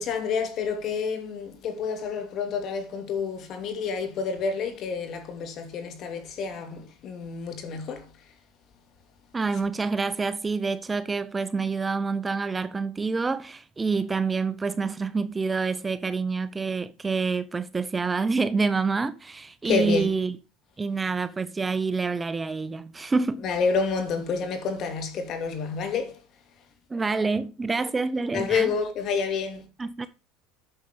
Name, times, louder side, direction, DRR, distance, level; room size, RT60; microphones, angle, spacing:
voice 1, 0.0-8.1 19.6-20.1 23.4-26.2 28.3-29.7, left 5 dB, 50° left, 2.6 m, -29 dB
voice 2, 9.3-20.4 20.8-23.4 26.9-28.7 29.8-30.1, right 4 dB, 20° right, 0.7 m, -27 dB
9.0 x 6.8 x 5.1 m
supercardioid pair, 110°, 0 cm